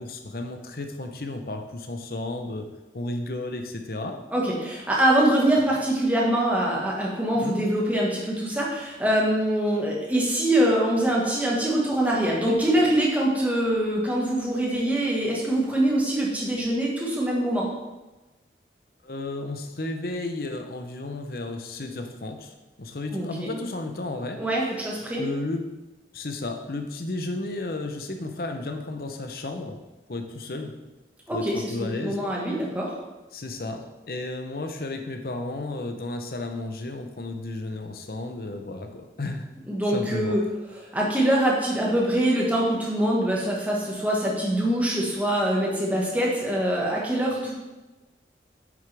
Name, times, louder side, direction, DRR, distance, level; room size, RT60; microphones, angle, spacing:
voice 1, 0.0-2.7 2.9-4.2 7.4-7.6 19.0-24.4 25.2-25.7 26.1-29.8 30.1-30.7 31.3-32.2 33.3-39.5 39.9-40.4, left 2 dB, 55° left, 5 dB, 0.8 m, -33 dB
voice 2, 4.3-17.7 23.1-23.5 24.4-25.2 31.3-31.6 32.0-32.9 39.7-40.4 40.9-47.5, right 1 dB, 10° right, -3 dB, 1.5 m, -24 dB
8.8 x 6.6 x 3.5 m, 1.1 s
head